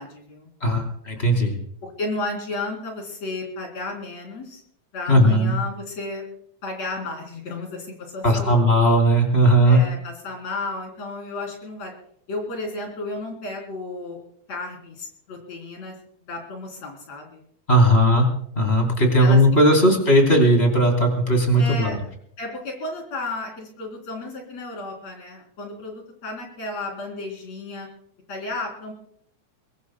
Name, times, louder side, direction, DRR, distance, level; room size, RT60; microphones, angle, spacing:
voice 1, 0.0-0.5 1.8-4.6 4.9-6.2 6.6-8.6 9.6-11.9 12.3-14.2 14.5-16.0 16.2-17.4 19.2-19.4 21.6-22.0 22.4-27.9 28.3-28.9, left 2 dB, 65° left, 1 dB, 4.7 m, -33 dB
voice 2, 0.6-1.6 5.1-5.5 8.2-9.8 17.7-18.3 18.6-22.0, equal, 20° left, 2 dB, 3.7 m, -17 dB
23.5 x 19.5 x 2.2 m, 0.65 s
omnidirectional pair, 3.3 m